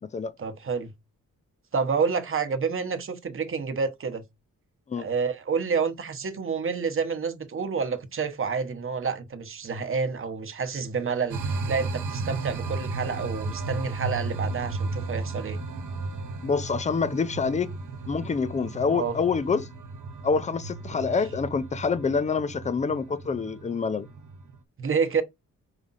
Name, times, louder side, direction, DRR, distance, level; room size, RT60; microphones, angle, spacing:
voice 1, 0.4-0.9 1.7-4.2 5.0-15.6 18.9-19.2 21.0-21.1 24.8-25.2, right 5 dB, 40° right, 1.0 m, -29 dB
sound 1, 11.3-24.6, right 3 dB, 65° right, 1.2 m, -34 dB
voice 2, 16.4-17.7 18.1-19.7 20.2-24.1, left 5 dB, 20° left, 0.5 m, -26 dB
4.9 x 4.8 x 4.1 m
wide cardioid pair, 130°, 33 cm